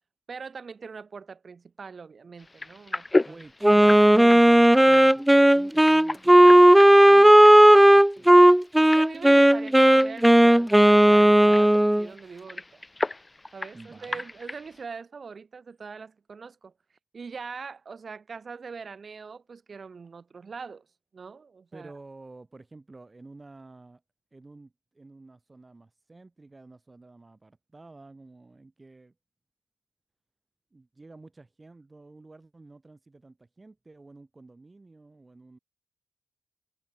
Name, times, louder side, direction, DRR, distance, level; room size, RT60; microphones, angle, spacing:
voice 1, 0.3-4.0 8.8-12.8 13.5-16.7 17.1-20.8 21.1-21.9, right 5 dB, 50° right, 7.9 m, -42 dB
sound 1, 2.4-14.8, left 2 dB, 20° left, 3.8 m, -35 dB
voice 2, 3.3-8.3 13.7-14.3 21.7-24.0 24.3-29.1 30.7-35.6, right 3 dB, 25° right, 5.6 m, -50 dB
Wind instrument woodwind instrument, 3.6-12.1, right 1 dB, 5° right, 0.3 m, -15 dB
cardioid pair, 60°, 0 cm